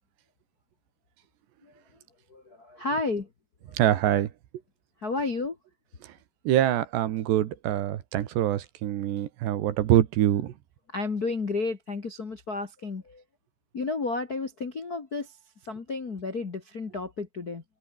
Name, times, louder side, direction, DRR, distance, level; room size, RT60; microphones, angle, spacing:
voice 1, 2.3-3.3 3.7-3.8 5.0-5.6 10.9-13.2 13.7-15.4 15.6-17.6, left 3 dB, 45° left, 1.2 m, -32 dB
voice 2, 3.7-4.3 6.0-6.1 6.5-10.5, right 12 dB, 75° right, 3.8 m, -24 dB
open air
omnidirectional pair, 5.0 m